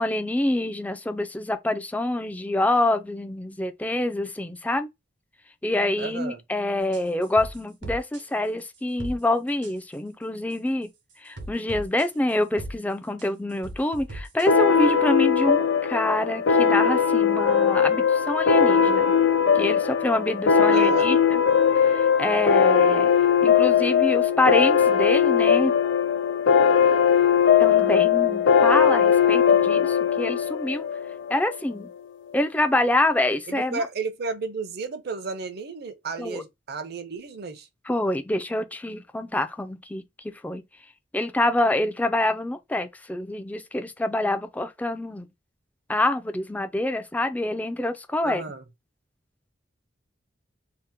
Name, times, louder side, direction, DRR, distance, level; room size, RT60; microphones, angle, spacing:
voice 1, 0.0-4.9 5.6-10.9 11.2-19.1 19.5-21.4 21.8-23.1 23.4-25.7 27.6-30.8 31.3-31.9 32.3-33.9 36.2-36.4 37.9-40.6 41.1-45.3 45.9-48.4, left 1 dB, 10° left, 0.3 m, -26 dB
voice 2, 6.0-6.4 20.7-21.1 33.5-37.7 48.2-48.7, right 4 dB, 60° right, 0.6 m, -33 dB
sound 1, 6.9-8.2 8.7-9.2 9.5-9.9 10.5-10.6 11.1-12.8 13.2-14.5, right 1 dB, 75° right, 1.1 m, -37 dB
sound 2, 14.5-31.6, left 7 dB, 80° left, 0.4 m, -20 dB
2.8 x 2.1 x 3.3 m
head